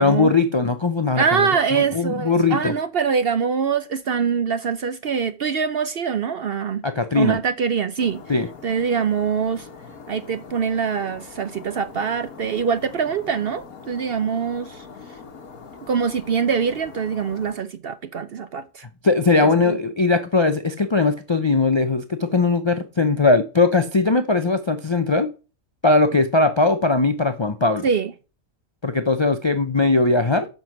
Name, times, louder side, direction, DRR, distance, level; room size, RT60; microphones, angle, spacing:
voice 1, 0.0-2.7 6.8-7.4 8.3-8.5 19.0-25.3 25.8-27.9 28.8-30.5, left 3 dB, 45° left, 0.3 m, -19 dB
voice 2, 1.2-6.8 7.1-8.2 8.6-9.7 10.1-14.8 15.9-18.8 19.4-19.8 27.8-28.1, right 6 dB, 55° right, 0.7 m, -24 dB
sound 1, 8.0-17.6, left 5 dB, 80° left, 1.9 m, -42 dB
7.7 x 6.1 x 5.8 m
omnidirectional pair, 1.5 m